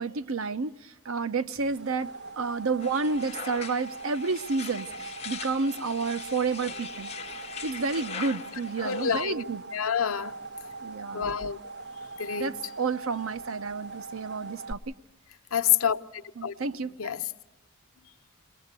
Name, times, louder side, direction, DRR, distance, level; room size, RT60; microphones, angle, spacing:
voice 1, 0.0-7.1 7.6-9.6 10.8-11.3 12.4-14.9 16.4-17.1, right 4 dB, 80° right, 0.7 m, -30 dB
sound 1, 1.5-14.7, right 3 dB, 50° right, 1.2 m, -42 dB
sound 2, 2.8-9.3, left 6 dB, 30° left, 1.2 m, -41 dB
voice 2, 8.8-9.3 9.7-10.4 11.1-11.6 12.2-12.5 15.5-16.0 16.4-16.5 17.0-17.2, left 8 dB, 85° left, 0.8 m, -27 dB
29.0 x 20.5 x 6.7 m
head